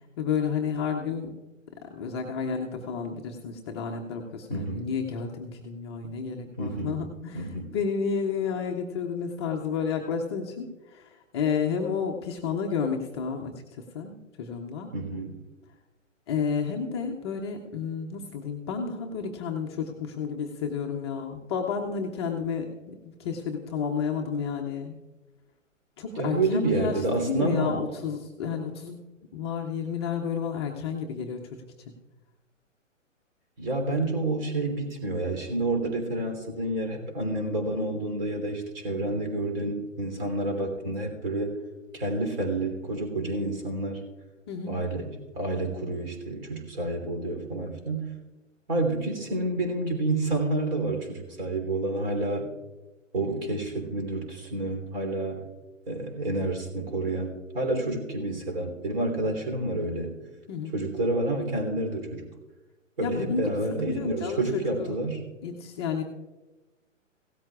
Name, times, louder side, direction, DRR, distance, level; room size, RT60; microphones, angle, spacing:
voice 1, 0.2-1.3 1.8-13.6 13.9-14.9 16.3-24.9 26.0-31.6 44.5-44.8 60.5-60.7 63.0-63.5 63.8-65.0 65.4-66.0, left 6 dB, 20° left, 1 dB, 0.7 m, -31 dB
voice 2, 4.5-4.9 6.6-7.0 7.3-7.7 14.9-15.4 26.2-27.8 33.6-41.6 41.9-44.1 44.6-48.1 48.7-52.5 53.1-55.4 55.9-60.1 60.7-62.3 63.0-65.2, right 2 dB, 45° right, 4 dB, 3.2 m, -29 dB
17.0 x 13.0 x 2.4 m, 1.1 s
figure-of-eight pair, 130°, 39 cm